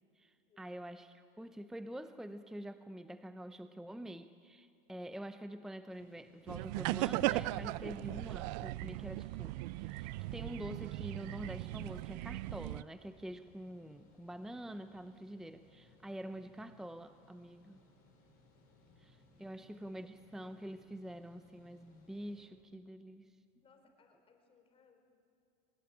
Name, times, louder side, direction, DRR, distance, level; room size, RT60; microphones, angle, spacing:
voice 1, 0.2-9.6 9.8-17.8 19.0-23.3, right 1 dB, ahead, 10 dB, 0.7 m, -46 dB
sound 1, 5.9-22.5, left 2 dB, 45° left, 6.6 m, -66 dB
sound 2, 6.5-12.8, right 19 dB, 75° right, 0.5 m, -38 dB
voice 2, 23.6-25.0, left 5 dB, 25° left, 5 dB, 4.4 m, -67 dB
24.5 x 20.5 x 8.9 m, 2.6 s
supercardioid pair, 135°, 21 cm